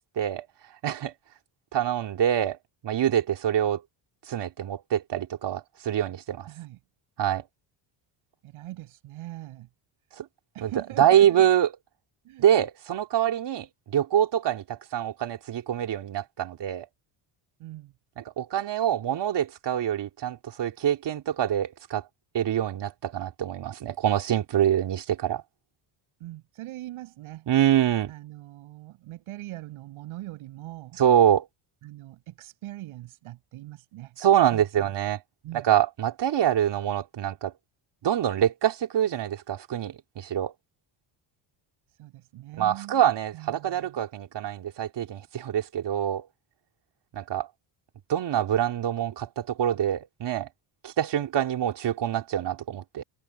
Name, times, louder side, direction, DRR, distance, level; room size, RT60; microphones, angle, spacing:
voice 1, 0.2-0.5 0.8-1.1 1.7-2.6 2.8-3.8 4.3-6.5 7.2-7.4 10.2-10.3 10.6-10.7 11.0-11.7 12.4-16.9 18.2-22.0 22.3-25.4 27.5-28.1 31.0-31.5 34.2-35.2 35.5-37.5 38.0-40.5 42.6-46.3 47.1-47.5 48.1-50.5 50.8-53.0, right 10 dB, 55° right, 3.0 m, -25 dB
voice 2, 6.4-6.8 8.4-9.7 10.5-11.5 12.2-12.5 17.6-17.9 26.2-27.5 28.1-31.0 31.8-34.2 34.5-34.9 35.4-35.7 41.9-43.0 43.3-44.0, right 16 dB, 80° right, 5.9 m, -41 dB
supercardioid pair, 85°, 49 cm